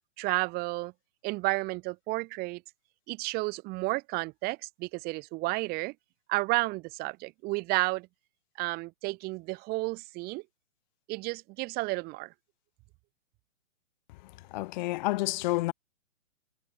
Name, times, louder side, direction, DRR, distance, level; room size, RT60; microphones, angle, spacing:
voice 1, 0.2-0.9 1.2-2.6 3.1-5.9 6.3-8.1 8.6-10.4 11.1-12.3, right 23 dB, 25° right, 1.5 m, -31 dB
voice 2, 14.5-15.7, left 19 dB, 35° left, 2.0 m, -29 dB
figure-of-eight pair, 125°, 38 cm